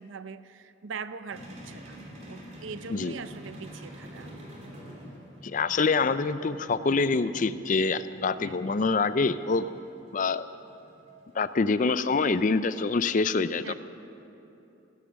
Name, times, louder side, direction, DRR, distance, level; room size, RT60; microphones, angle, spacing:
voice 1, 0.0-2.0 2.3-4.3 8.4-8.6 13.6-13.7, right 5 dB, 70° right, 12 dB, 0.6 m, -41 dB
sound 1, 1.3-12.0, equal, 35° right, 3.0 m, -47 dB
voice 2, 5.4-9.7 10.1-10.5 11.3-13.7, left 4 dB, 40° left, 13 dB, 0.4 m, -25 dB
16.0 x 14.0 x 6.3 m, 2.9 s
head